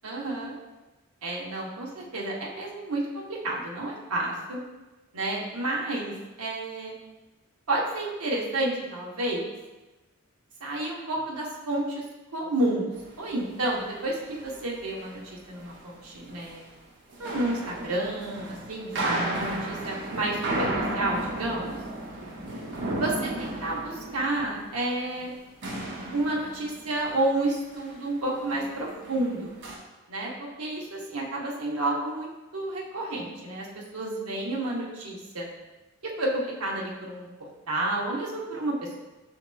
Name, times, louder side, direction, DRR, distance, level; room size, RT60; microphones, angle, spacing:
voice 1, 0.0-0.5 1.2-4.6 5.1-6.9 7.7-9.4 10.6-12.0 12.3-12.9 13.2-15.2 15.5-16.6 17.2-20.7 20.9-21.8 22.9-25.3 26.1-29.6 30.1-33.7 33.9-35.5 36.0-37.3 37.7-39.0, right 2 dB, 85° right, -3 dB, 0.9 m, -30 dB
sound 1, 12.9-13.2 13.5-13.9 14.2-15.9 16.2-16.5 17.1-25.4 25.6-27.5 27.7-28.1 28.4-29.8, right 1 dB, 50° right, 0.7 m, -34 dB
7.0 x 2.9 x 2.2 m, 1.1 s
head